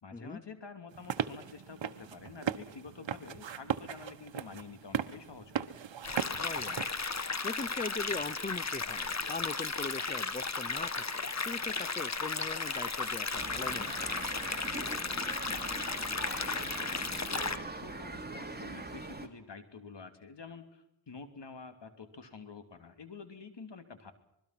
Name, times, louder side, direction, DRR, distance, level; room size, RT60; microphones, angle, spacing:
voice 1, 0.0-5.7 15.4-24.1, left 4 dB, 65° left, 8 dB, 3.0 m, -49 dB
sound 1, 0.9-6.9, right 8 dB, 75° right, 1.2 m, -38 dB
sound 2, 6.0-17.6, left 4 dB, 35° left, 1.6 m, -35 dB
voice 2, 6.4-14.3, left 3 dB, 20° left, 20 dB, 0.8 m, -41 dB
sound 3, 13.4-19.3, right 3 dB, 20° right, 2.9 m, -42 dB
25.5 x 22.0 x 6.0 m, 0.80 s
cardioid pair, 70°, 45 cm